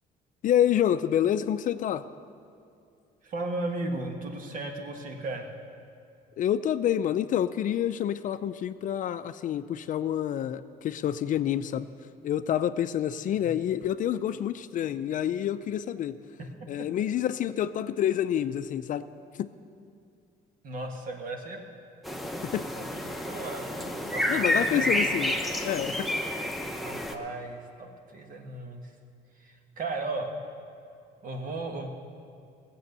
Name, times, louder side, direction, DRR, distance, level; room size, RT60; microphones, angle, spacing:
voice 1, 0.4-2.0 6.4-11.9 12.2-16.2 16.7-19.0 19.4-19.5 22.4-22.7 24.0-26.1, left 10 dB, 50° left, 12 dB, 0.4 m, -28 dB
voice 2, 3.2-5.5 13.3-13.6 16.8-16.9 20.6-21.6 22.7-24.2 24.5-24.9 26.8-28.9 29.4-30.4 31.2-31.9, right 2 dB, 55° right, 3 dB, 1.6 m, -36 dB
sound 1, 22.0-27.1, left 1 dB, ahead, 0.9 m, -30 dB
16.0 x 7.8 x 6.7 m, 2.4 s
cardioid pair, 110°, 17 cm